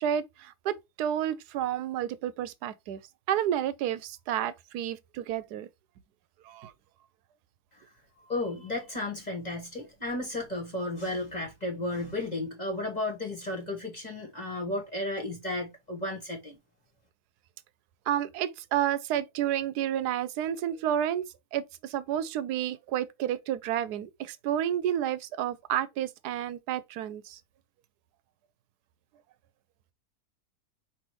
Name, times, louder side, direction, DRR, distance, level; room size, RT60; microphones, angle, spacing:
voice 1, 0.0-3.0 3.3-5.7 6.5-6.7 18.1-21.2 21.5-21.6 21.9-27.4, right 10 dB, 85° right, 1.2 m, -30 dB
voice 2, 8.2-16.6, left 2 dB, 30° left, 1.5 m, -33 dB
5.4 x 3.0 x 3.1 m
omnidirectional pair, 1.7 m